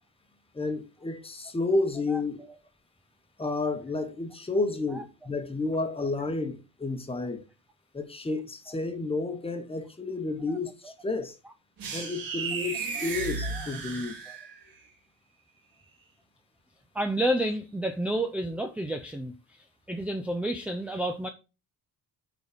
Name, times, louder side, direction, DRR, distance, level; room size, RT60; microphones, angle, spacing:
voice 1, 0.5-2.4 3.4-7.4 7.9-11.3 11.9-14.2, left 3 dB, 15° left, 1.1 m, -31 dB
voice 2, 2.1-2.5 4.9-5.0 6.0-6.1 10.5-10.6 13.5-13.7 16.9-19.3 19.9-21.3, right 1 dB, 5° right, 0.5 m, -30 dB
sound 1, 11.8-14.7, right 4 dB, 60° right, 2.9 m, -34 dB
9.2 x 4.1 x 5.0 m
cardioid pair, 180°, 38 cm